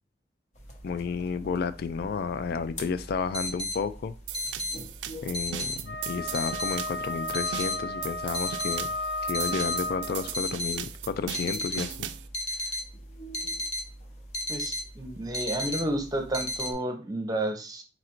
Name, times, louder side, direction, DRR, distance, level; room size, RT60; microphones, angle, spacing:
sound 1, 0.6-16.7, left 1 dB, 40° left, 0.9 m, -36 dB
voice 1, 0.8-4.1 5.2-8.9 9.2-12.1, left 5 dB, 55° left, 0.3 m, -32 dB
sound 2, 4.3-12.3, right 10 dB, 75° right, 0.4 m, -38 dB
Wind instrument woodwind instrument, 5.8-10.4, left 2 dB, 80° left, 2.6 m, -34 dB
voice 2, 14.5-17.8, right 1 dB, 20° right, 0.8 m, -31 dB
4.1 x 2.5 x 4.3 m
head